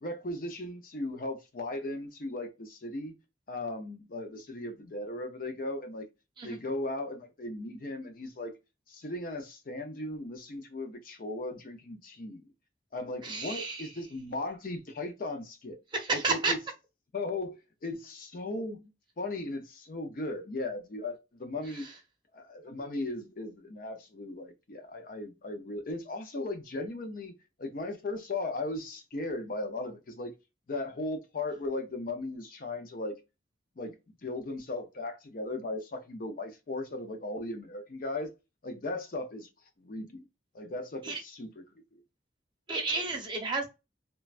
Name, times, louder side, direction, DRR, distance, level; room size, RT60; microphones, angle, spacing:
voice 1, 0.0-3.2 3.5-6.1 6.4-8.6 8.9-12.4 12.9-15.8 16.1-16.6 17.1-18.9 19.2-21.9 22.3-30.4 30.7-33.2 33.8-34.0 34.2-38.3 38.6-39.5 39.8-40.3 40.5-41.6 41.9-42.0, left 2 dB, 50° left, 0.5 m, -37 dB
voice 2, 13.2-13.9 15.9-16.5 21.7-21.9 41.0-41.2 42.7-43.7, right 3 dB, 25° right, 0.7 m, -31 dB
3.2 x 2.2 x 2.4 m
head